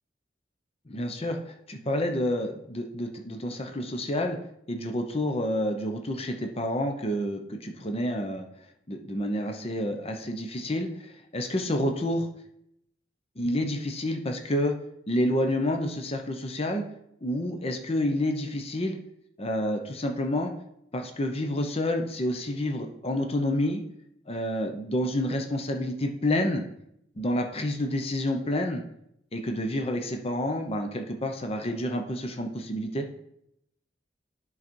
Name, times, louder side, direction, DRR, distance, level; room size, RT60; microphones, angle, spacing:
voice 1, 0.9-4.4 4.7-8.4 8.9-12.3 13.4-14.7 15.1-16.8 17.2-19.0 19.4-20.5 20.9-23.8 24.3-26.6 27.2-28.8 29.3-33.1, left 1 dB, 35° left, 4 dB, 0.8 m, -29 dB
10.0 x 4.1 x 4.5 m, 0.74 s
head